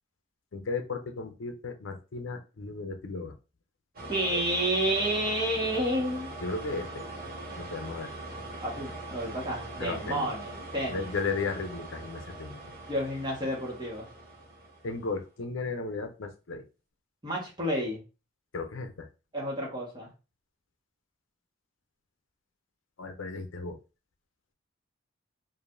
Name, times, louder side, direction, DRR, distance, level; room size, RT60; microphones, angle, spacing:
voice 1, 0.5-3.3 6.4-7.0 7.6-8.1 9.8-10.3 10.9-12.6 14.8-16.6 18.5-19.1 23.0-23.8, left 4 dB, 75° left, 7 dB, 0.6 m, -35 dB
sound 1, 3.9-15.2, right 2 dB, 50° right, 1.4 m, -42 dB
voice 2, 4.1-6.3 8.6-11.1 12.9-14.1 17.2-18.0 19.3-20.1, right 1 dB, 20° right, -3 dB, 1.3 m, -30 dB
5.0 x 2.6 x 2.5 m, 0.31 s
head